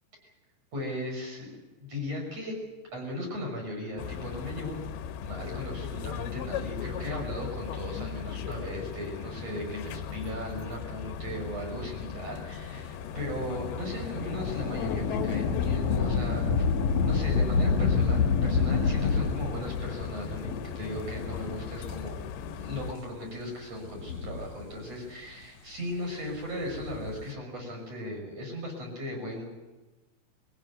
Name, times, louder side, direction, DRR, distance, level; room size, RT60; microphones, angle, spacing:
voice 1, 0.7-1.5 1.8-2.6 2.9-4.8 5.2-16.6 17.0-29.5, left 1 dB, 35° right, 0 dB, 6.8 m, -37 dB
sound 1, 4.0-22.9, left 8 dB, 75° left, 2.6 m, -38 dB
Thunder / Rain, 13.0-22.0 22.7-22.8 23.7-25.0 26.5-27.3, left 5 dB, 50° left, 2.3 m, -29 dB
23.0 x 16.0 x 9.3 m, 1.1 s
omnidirectional pair, 5.2 m